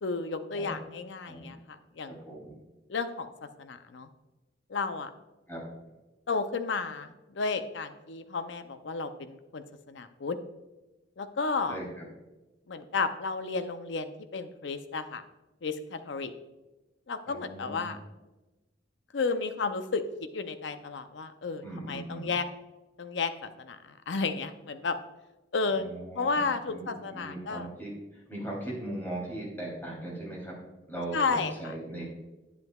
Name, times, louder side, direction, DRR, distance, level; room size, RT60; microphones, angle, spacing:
voice 1, 0.0-2.1 2.9-4.1 4.7-5.1 6.3-10.4 11.2-11.8 12.7-15.2 15.6-16.3 17.1-18.0 19.1-22.5 23.0-23.8 24.1-25.0 25.5-25.9 26.1-27.7 31.1-31.5, left 4 dB, 70° left, 9 dB, 0.6 m, -32 dB
voice 2, 2.1-2.6 5.5-5.6 11.7-12.0 17.3-18.0 21.6-22.3 25.7-30.5 30.9-32.0, right 1 dB, 10° left, -4 dB, 3.2 m, -39 dB
10.5 x 9.5 x 2.3 m, 1.1 s
head